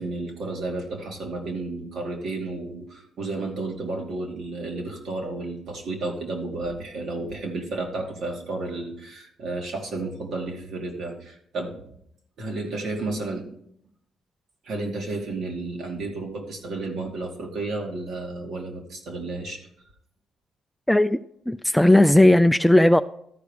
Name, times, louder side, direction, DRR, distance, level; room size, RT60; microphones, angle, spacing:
voice 1, 0.0-11.9 12.4-13.5 14.6-19.7, right 2 dB, 65° right, 2.4 m, -32 dB
voice 2, 20.9-21.2 21.5-23.0, left 1 dB, 5° left, 0.3 m, -16 dB
13.0 x 5.0 x 5.0 m
cardioid pair, 90°, 0 cm